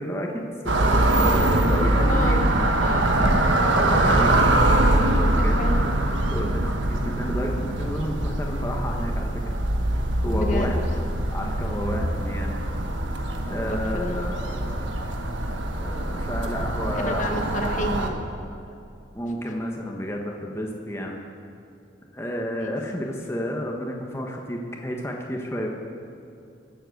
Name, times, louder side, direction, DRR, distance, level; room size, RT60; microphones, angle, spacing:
voice 1, 0.0-2.5 3.8-4.3 4.7-5.6 6.3-9.5 10.2-10.8 11.3-12.6 13.4-14.7 15.6-17.2 19.1-21.1 22.1-25.7, equal, 15° left, 0 dB, 1.3 m, -31 dB
sound 1, 0.7-18.1, right 1 dB, 85° right, 1.3 m, -23 dB
voice 2, 2.0-2.5 2.8-3.7 5.4-5.8 10.3-10.8 13.7-14.4 16.9-18.3 19.3-19.4 22.6-22.7, left 1 dB, 40° left, 3 dB, 1.3 m, -31 dB
21.5 x 8.0 x 6.5 m, 2.6 s
head